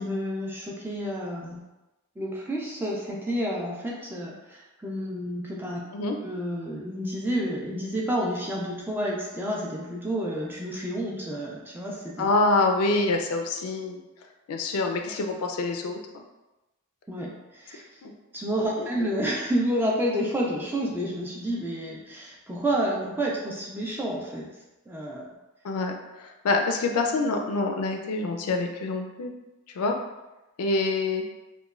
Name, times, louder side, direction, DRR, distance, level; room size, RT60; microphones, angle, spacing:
voice 1, 0.0-1.6 2.2-5.8 6.2-12.3 17.1-17.8 18.3-24.5 24.9-25.3, equal, 10° right, -3 dB, 0.3 m, -30 dB
voice 2, 12.2-14.0 14.5-16.2 18.0-18.1 18.6-19.1 25.6-29.3 29.7-30.0 30.6-31.2, left 3 dB, 80° left, 3 dB, 0.4 m, -26 dB
3.0 x 2.2 x 2.3 m, 1.0 s
head